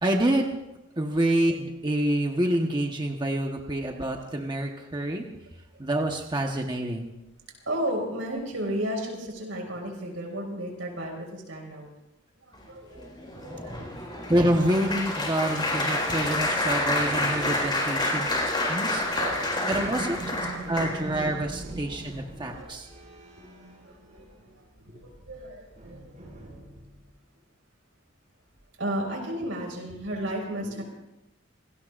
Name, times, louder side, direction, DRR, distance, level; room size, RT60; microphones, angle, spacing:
voice 1, 0.0-0.5 1.0-5.2 5.8-7.1 14.3-18.3 18.6-19.0 19.7-22.9, right 1 dB, 25° right, 2 dB, 1.2 m, -27 dB
voice 2, 7.7-11.9 12.4-14.3 14.6-15.2 17.0-17.6 17.9-20.1 20.6-21.0 21.6-21.8 22.3-22.8 23.4-26.4 28.8-30.8, right 1 dB, 80° right, 0 dB, 5.4 m, -35 dB
Applause, 13.0-21.3 21.9-22.2 22.4-22.6, left 1 dB, 25° left, 4.4 m, -28 dB
sound 1, 19.0-24.6 24.9-27.1, right 1 dB, 40° right, 6.5 m, -42 dB
27.5 x 18.5 x 2.5 m, 0.93 s
head